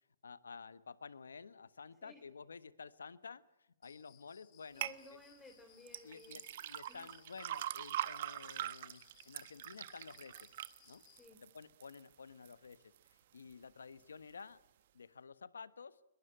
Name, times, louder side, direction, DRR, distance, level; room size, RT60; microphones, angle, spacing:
voice 1, 0.2-4.9 6.0-10.5 10.9-11.0 11.4-14.6 14.9-16.0, left 5 dB, 90° left, 15 dB, 1.2 m, -52 dB
Cricket, 3.8-11.3, left 13 dB, 30° left, 2.3 m, -67 dB
voice 2, 4.7-6.4 6.9-7.1 11.2-11.4, left 2 dB, 10° left, 4 dB, 3.9 m, -56 dB
sound 1, 4.8-5.0 5.9-12.0 12.4-13.0 13.5-13.6, right 12 dB, 55° right, 1.1 m, -42 dB
22.0 x 21.5 x 8.8 m, 0.91 s
hypercardioid pair, 135°, 0 cm